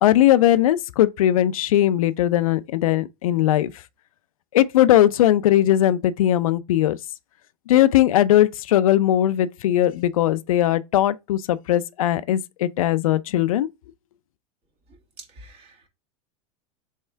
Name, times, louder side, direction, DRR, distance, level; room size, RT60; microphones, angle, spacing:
voice 1, 0.0-3.7 4.5-7.0 7.7-13.7, left 12 dB, 85° left, 0.4 m, -19 dB
voice 2, 14.9-15.9, right 2 dB, 35° right, 1.5 m, -47 dB
3.6 x 3.3 x 4.4 m
supercardioid pair, 125°, 17 cm